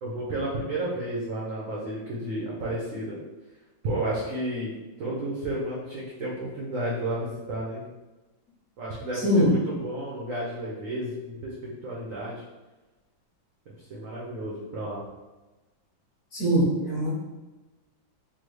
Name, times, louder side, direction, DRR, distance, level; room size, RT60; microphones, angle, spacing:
voice 1, 0.0-3.2 3.8-4.7 5.0-7.8 8.8-12.4 13.9-15.0, right 1 dB, 80° right, -5 dB, 0.7 m, -32 dB
voice 2, 9.1-9.5 16.3-17.1, equal, 50° left, -7 dB, 1.2 m, -22 dB
3.7 x 2.0 x 3.1 m, 1.1 s
omnidirectional pair, 2.1 m